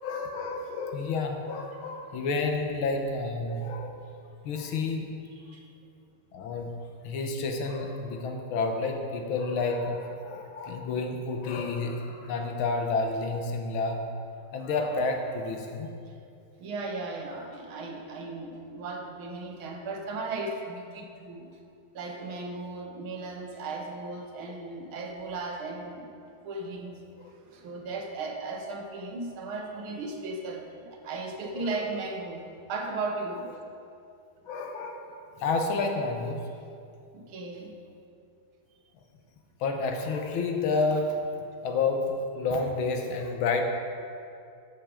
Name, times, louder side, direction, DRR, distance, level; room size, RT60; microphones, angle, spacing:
voice 1, 0.0-4.0 4.4-5.2 6.3-6.8 7.0-14.0 14.5-15.9 27.2-27.3 34.5-35.1 35.4-36.4 39.6-41.3 41.6-43.6, left 3 dB, 80° left, 3 dB, 1.8 m, -30 dB
voice 2, 16.6-21.5 21.9-26.1 26.4-27.0 27.4-33.5 37.1-37.8, right 3 dB, 80° right, 2 dB, 1.9 m, -36 dB
13.0 x 6.0 x 5.0 m, 2.5 s
omnidirectional pair, 2.3 m